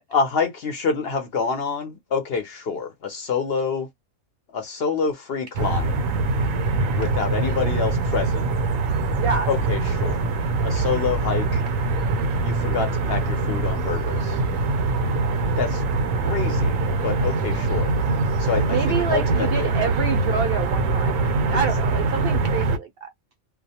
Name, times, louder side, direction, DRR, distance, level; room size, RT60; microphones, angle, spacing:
voice 1, 0.1-3.9 4.5-6.0 6.8-8.5 9.5-10.2 10.6-11.6 12.4-14.4 15.6-15.8 16.2-17.9 18.4-19.7, left 5 dB, 60° left, 0.8 m, -27 dB
sound 1, 5.6-22.8, right 3 dB, 80° right, 1.0 m, -23 dB
voice 2, 9.2-9.5 18.7-23.1, right 6 dB, 60° right, 0.6 m, -27 dB
2.3 x 2.1 x 2.7 m
omnidirectional pair, 1.3 m